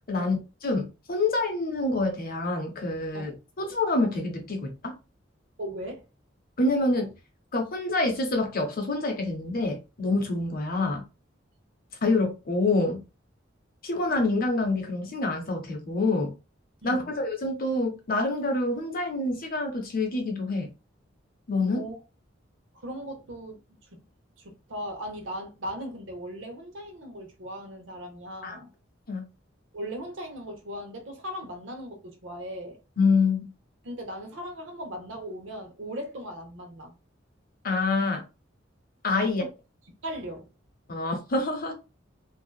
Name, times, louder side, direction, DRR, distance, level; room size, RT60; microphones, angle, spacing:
voice 1, 0.6-4.9 6.6-7.1 7.5-11.0 12.0-13.0 13.8-16.3 16.8-20.7 21.5-21.8 28.4-28.6 29.1-29.2 33.0-33.5 37.6-38.2 39.0-39.4 40.9-41.7, left 3 dB, 50° left, 0.8 m, -26 dB
voice 2, 5.6-6.0 16.8-17.2 21.7-22.0 22.7-23.6 23.9-24.0 24.4-28.7 29.7-32.8 33.8-36.9 39.2-39.5 40.0-40.5, equal, 70° right, 0.8 m, -38 dB
2.7 x 2.3 x 2.2 m
head